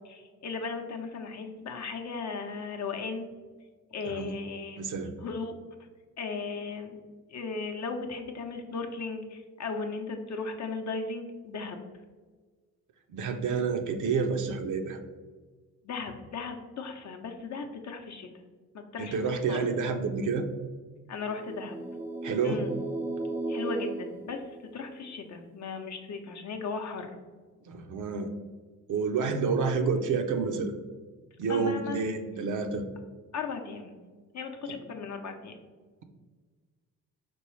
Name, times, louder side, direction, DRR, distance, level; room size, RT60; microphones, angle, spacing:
voice 1, 0.0-3.3 3.9-4.8 5.2-5.5 6.2-7.0 7.3-11.8 15.8-18.3 18.7-19.2 19.5-19.6 21.1-21.7 22.4-22.8 23.5-24.4 24.7-27.1 31.5-32.0 33.3-33.9 34.3-35.6, left 4 dB, 50° left, 4 dB, 0.7 m, -36 dB
voice 2, 4.8-5.1 13.1-15.0 19.0-20.5 22.2-22.6 27.7-28.3 28.9-30.7 31.4-32.9 34.7-34.8, right 5 dB, 55° right, 6 dB, 0.6 m, -29 dB
sound 1, 21.3-25.1, right 2 dB, 5° right, 0.4 m, -35 dB
4.5 x 3.0 x 3.2 m, 1.4 s
supercardioid pair, 55°, 36 cm